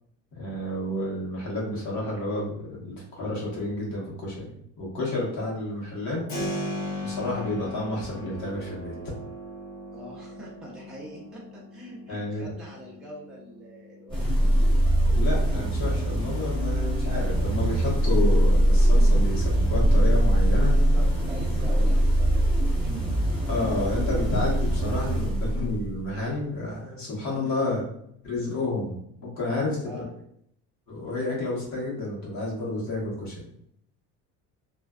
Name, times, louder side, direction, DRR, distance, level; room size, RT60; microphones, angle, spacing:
voice 1, 0.3-6.2 7.0-8.9 12.1-12.4 15.1-20.7 23.5-27.8 28.2-30.0 30.9-33.4, left 2 dB, 65° left, -4 dB, 1.1 m, -30 dB
Keyboard (musical), 6.3-17.0, left 1 dB, 90° left, 1.1 m, -39 dB
voice 2, 9.9-14.5 20.7-23.1 27.3-27.8 29.8-30.1, right 1 dB, ahead, -5 dB, 0.4 m, -43 dB
sound 1, 14.1-26.0, right 1 dB, 15° left, 1.0 m, -22 dB
2.5 x 2.2 x 2.3 m, 0.71 s
cardioid pair, 160°, 31 cm